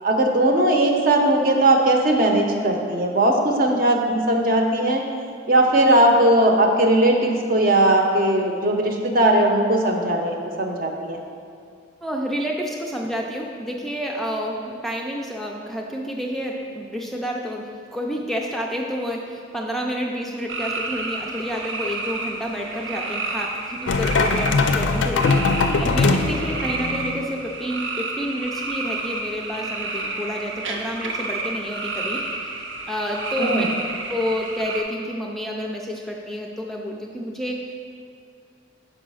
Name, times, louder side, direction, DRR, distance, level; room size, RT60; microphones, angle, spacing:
voice 1, 0.0-5.0 5.5-11.2 33.4-33.7, right 1 dB, 50° right, 2 dB, 0.8 m, -19 dB
voice 2, 12.0-32.5 32.9-33.6 34.1-37.8, equal, ahead, -1 dB, 0.4 m, -29 dB
sound 1, 20.5-34.8, right 3 dB, 85° right, 0.7 m, -30 dB
sound 2, 23.9-27.2, left 3 dB, 85° left, 0.4 m, -21 dB
5.5 x 5.0 x 6.2 m, 2.2 s
head